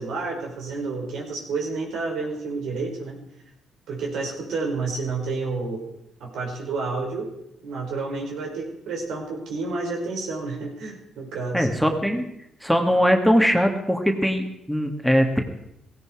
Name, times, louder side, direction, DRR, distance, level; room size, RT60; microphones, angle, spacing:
voice 1, 0.0-3.2 3.9-5.8 6.2-7.3 7.6-11.7, right 3 dB, 80° right, 0 dB, 5.5 m, -30 dB
voice 2, 11.5-12.3 12.6-15.4, equal, ahead, 4 dB, 2.0 m, -21 dB
17.0 x 17.0 x 4.9 m, 0.82 s
cardioid pair, 90°, 0 cm